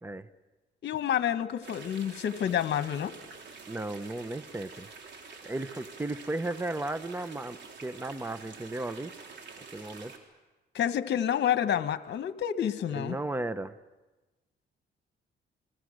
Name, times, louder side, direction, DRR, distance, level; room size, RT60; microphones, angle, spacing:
voice 1, 0.8-3.1 10.7-13.2, left 9 dB, 60° left, 11 dB, 1.3 m, -29 dB
sound 1, 1.6-10.2, right 4 dB, 60° right, 3.8 m, -48 dB
voice 2, 3.7-4.9 5.4-9.1 9.7-10.1 12.9-13.8, right 2 dB, 10° right, 13 dB, 0.9 m, -35 dB
30.0 x 22.0 x 6.5 m, 1.2 s
cardioid pair, 90°, 20 cm